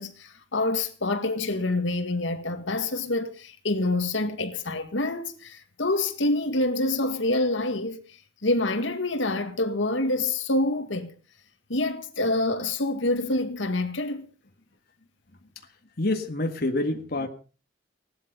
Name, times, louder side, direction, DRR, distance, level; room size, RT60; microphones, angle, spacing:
voice 1, 0.0-8.0 8.4-11.1 11.7-14.2, left 2 dB, 70° left, 2.0 m, -26 dB
voice 2, 16.0-17.3, left 2 dB, 50° left, 1.8 m, -27 dB
17.5 x 12.5 x 5.4 m
head